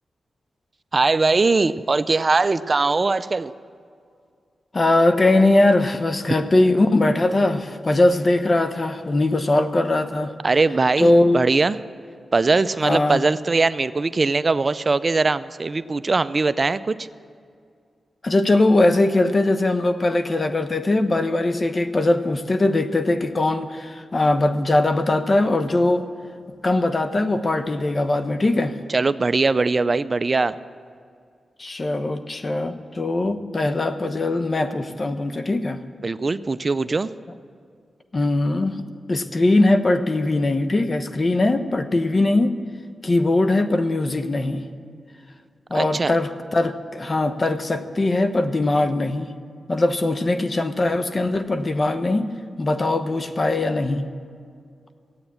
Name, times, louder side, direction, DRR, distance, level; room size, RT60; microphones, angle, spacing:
voice 1, 0.9-3.5 10.4-11.8 12.3-17.0 28.9-30.5 36.0-37.1 45.7-46.1, right 3 dB, 45° right, 15 dB, 0.5 m, -21 dB
voice 2, 4.7-10.3 11.0-11.4 12.8-13.2 18.2-26.0 26.6-28.8 31.6-35.8 38.1-42.5 43.0-44.6 45.7-49.3 49.7-52.3 52.6-54.0, left 2 dB, 40° left, 9 dB, 1.0 m, -20 dB
14.5 x 9.0 x 8.5 m, 2.2 s
cardioid pair, 55°, 0 cm